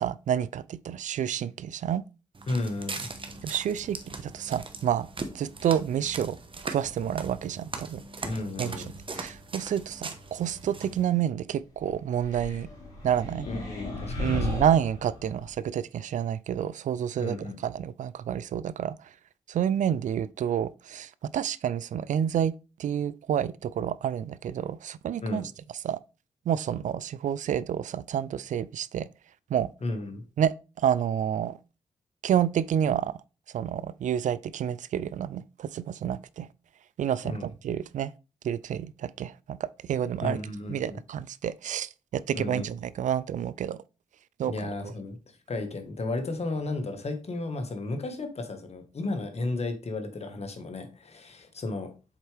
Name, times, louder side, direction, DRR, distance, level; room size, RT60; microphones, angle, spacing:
voice 1, 0.0-2.0 3.4-5.1 5.3-6.4 6.6-8.0 8.6-8.7 9.2-12.7 13.0-13.5 14.2-17.4 17.6-18.9 19.5-22.5 22.8-25.4 25.8-26.0 26.5-29.1 29.5-29.7 30.4-30.5 30.8-31.6 32.2-33.1 33.5-36.5 37.0-38.1 38.4-40.4 40.7-43.8 44.4-44.7, right 9 dB, 70° right, 0.4 m, -29 dB
Walk footsteps, 2.4-11.0, right 3 dB, 40° right, 1.2 m, -40 dB
voice 2, 2.5-3.1 8.2-8.9 13.5-14.6 17.2-17.6 25.2-25.4 29.8-30.2 37.2-37.5 40.2-41.0 42.3-42.7 44.5-45.2 45.5-51.9, left 2 dB, 50° left, 1.6 m, -33 dB
sound 1, 12.1-15.5, left 3 dB, 90° left, 3.8 m, -35 dB
7.3 x 4.4 x 3.4 m
supercardioid pair, 50°, 13 cm